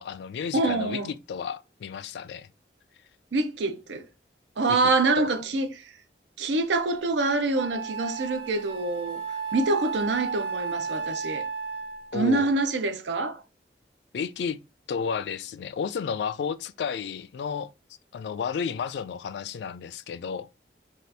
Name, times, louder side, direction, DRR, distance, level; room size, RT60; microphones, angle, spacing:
voice 1, 0.0-2.5 4.7-4.9 5.2-5.3 12.1-12.5 14.1-14.6 14.9-17.7 18.1-20.5, left 6 dB, 75° left, 0.3 m, -32 dB
voice 2, 0.5-1.1 3.3-4.0 4.6-5.8 6.4-9.2 9.5-11.5 12.1-13.4, right 3 dB, 85° right, 0.6 m, -25 dB
Wind instrument woodwind instrument, 6.9-7.0 7.5-12.2, right 5 dB, 30° right, 0.7 m, -33 dB
2.7 x 2.4 x 3.3 m
head